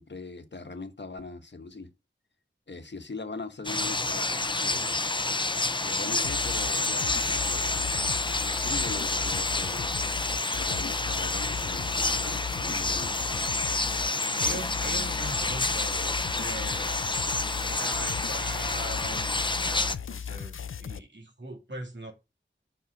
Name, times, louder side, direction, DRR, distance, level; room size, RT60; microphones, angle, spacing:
voice 1, 0.0-1.9 2.7-5.0 5.8-8.0 8.5-9.9 10.5-13.5, left 3 dB, 60° left, 1.1 m, -41 dB
sound 1, 3.6-19.9, left 2 dB, 25° left, 0.6 m, -29 dB
sound 2, 6.2-21.0, left 7 dB, 85° left, 0.4 m, -37 dB
voice 2, 14.4-17.0 17.8-22.1, right 2 dB, 65° right, 2.5 m, -41 dB
5.7 x 5.4 x 5.1 m
wide cardioid pair, 60°, 20 cm